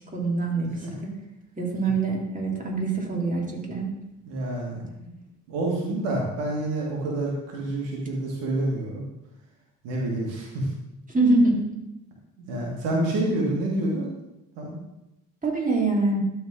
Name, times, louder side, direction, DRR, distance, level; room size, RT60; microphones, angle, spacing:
voice 1, 0.1-0.7 1.0-1.1 1.6-3.9 11.1-11.7 15.4-16.2, right 3 dB, 20° right, -2 dB, 2.6 m, -24 dB
voice 2, 4.3-5.2 5.5-9.0 9.8-10.7 12.4-14.1 14.6-14.8, right 1 dB, 80° right, -2 dB, 1.9 m, -28 dB
12.0 x 4.2 x 3.7 m, 0.94 s
hypercardioid pair, 55°, 43 cm